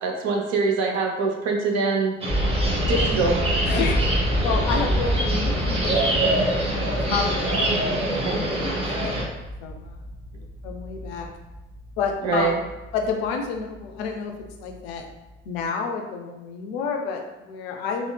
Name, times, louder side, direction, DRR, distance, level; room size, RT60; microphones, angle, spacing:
voice 1, 0.0-2.2 2.9-3.5 8.2-8.4 12.2-12.5, right 4 dB, 45° right, 1 dB, 0.6 m, -24 dB
sound 1, 2.2-9.2, right 1 dB, 15° right, 0.8 m, -25 dB
sound 2, 2.3-14.2 14.4-14.8 15.1-15.3, equal, 10° left, 0.4 m, -28 dB
voice 2, 3.7-4.0 4.4-8.0 8.3-9.3 9.6-10.0 10.3-11.3 12.0-12.6 12.9-14.3 14.6-15.0 15.4-18.1, left 5 dB, 60° left, 3 dB, 0.5 m, -30 dB
3.6 x 2.1 x 2.2 m, 1.1 s
figure-of-eight pair, 55°, 36 cm